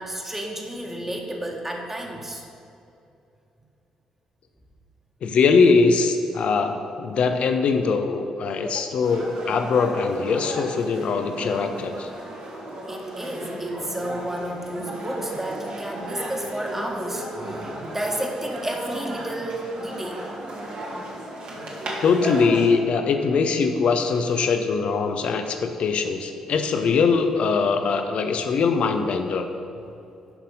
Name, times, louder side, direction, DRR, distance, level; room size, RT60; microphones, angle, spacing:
voice 1, 0.0-2.4 8.6-8.8 12.9-20.2, right 1 dB, 15° right, 0 dB, 1.7 m, -31 dB
voice 2, 5.2-12.1 22.0-29.5, left 4 dB, 50° left, 7 dB, 0.8 m, -22 dB
sound 1, 9.0-22.7, right 1 dB, 50° right, 2.0 m, -35 dB
10.5 x 5.8 x 5.4 m, 2.7 s
figure-of-eight pair, 40°, 2 cm